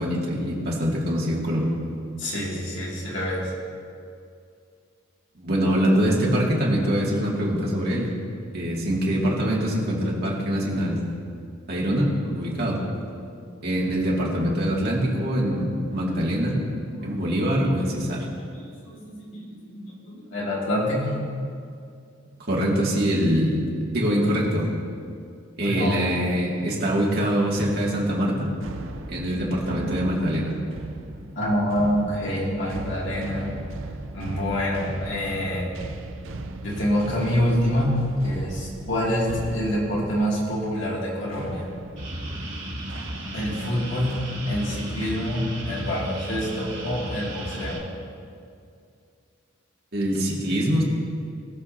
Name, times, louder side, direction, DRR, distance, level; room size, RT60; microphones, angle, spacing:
voice 1, 0.0-1.7 5.4-8.1 8.5-11.0 11.7-12.8 13.6-16.6 17.0-18.3 22.5-23.6 23.9-24.7 25.6-28.5 29.1-30.6 49.9-50.8, equal, 55° right, -4 dB, 2.4 m, -24 dB
voice 2, 2.2-3.5 13.4-13.7 16.7-17.1 17.8-18.1 18.4-21.2 25.6-26.3 29.2-29.5 29.8-30.1 31.4-33.5 34.1-35.7 36.6-41.7 43.3-44.2 44.5-47.8, equal, 65° left, -5 dB, 2.6 m, -27 dB
sound 1, 27.5-43.7 44.1-44.4 45.0-45.5, right 2 dB, 70° right, 0.6 m, -38 dB
sound 2, 42.0-47.8, right 1 dB, 35° right, 2.4 m, -34 dB
21.0 x 7.3 x 2.9 m, 2.4 s
head